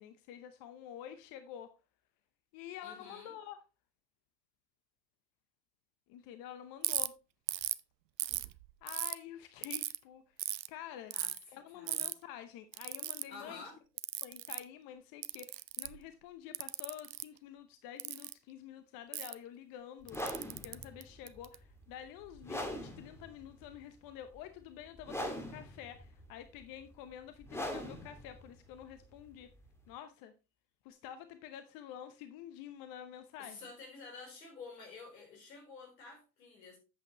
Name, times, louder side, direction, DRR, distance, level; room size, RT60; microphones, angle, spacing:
voice 1, 0.0-1.7 2.5-3.6 6.1-7.2 8.8-10.4 10.7-11.1 11.5-13.7 14.2-29.5 29.9-30.3 30.8-33.6, left 10 dB, 45° left, 0.9 m, -49 dB
voice 2, 2.8-3.3 11.1-12.1 13.3-13.8 33.4-36.8, left 4 dB, 75° left, 4.0 m, -50 dB
Ratchet pawl, 6.8-7.1 7.5-7.8 8.2-9.1 9.6-10.0 10.4-10.7 11.1-11.4 11.9-12.1 12.7-13.2 14.0-14.6 15.2-16.0 16.5-17.2 18.0-18.3 19.1-19.3 20.1-21.5, right 14 dB, 85° right, 0.6 m, -36 dB
sound 1, 20.0-29.9, equal, 5° left, 2.1 m, -43 dB
8.9 x 7.6 x 3.0 m
hypercardioid pair, 90°, 49 cm